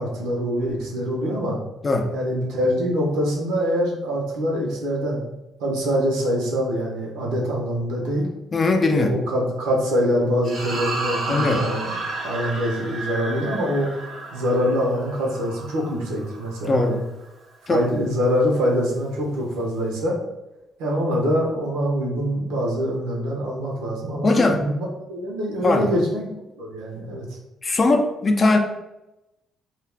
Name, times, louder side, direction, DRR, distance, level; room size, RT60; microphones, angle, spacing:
voice 1, 0.0-1.6 2.1-5.2 5.6-8.3 8.9-11.9 12.2-13.9 14.3-17.0 17.7-20.2 20.8-26.2 26.6-27.2, equal, 90° right, -2 dB, 0.8 m, -24 dB
voice 2, 8.5-9.2 11.3-11.6 16.7-17.0 17.7-17.8 24.2-24.6 25.6-25.9 27.6-28.6, left 2 dB, 35° left, 4 dB, 0.4 m, -19 dB
sound 1, 10.4-17.0, right 2 dB, 55° right, 0.7 m, -32 dB
2.4 x 2.3 x 3.3 m, 0.93 s
supercardioid pair, 75°, 0 cm